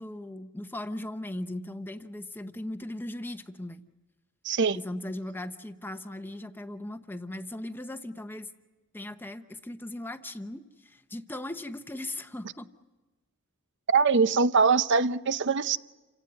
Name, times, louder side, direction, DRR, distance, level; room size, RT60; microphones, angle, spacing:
voice 1, 0.0-3.8 4.7-8.5 8.9-12.7, left 1 dB, 10° left, 0.8 m, -38 dB
voice 2, 4.4-4.8 13.9-15.8, right 5 dB, 55° right, 0.7 m, -23 dB
28.5 x 17.5 x 9.6 m
head